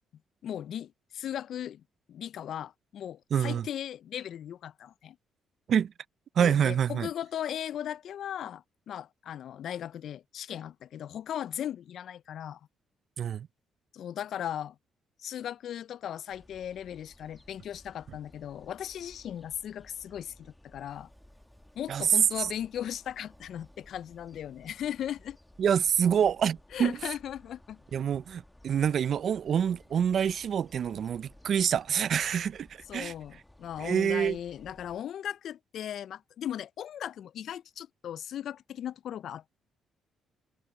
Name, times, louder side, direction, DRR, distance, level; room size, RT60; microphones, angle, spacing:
voice 1, 0.4-1.8 2.1-5.2 6.4-12.6 13.9-14.8 15.2-21.1 21.8-25.4 26.7-27.8 32.9-39.6, left 10 dB, 70° left, 0.3 m, -37 dB
voice 2, 3.3-3.7 5.7-5.9 6.4-7.1 13.2-13.5 21.9-22.1 25.6-27.0 27.9-32.7 32.9-33.1 33.8-34.4, right 8 dB, 60° right, 0.4 m, -26 dB
sound 1, 16.3-35.0, left 1 dB, 10° left, 1.4 m, -57 dB
sound 2, 20.9-26.9, right 2 dB, 15° right, 6.2 m, -68 dB
cardioid pair, 90°, 0 cm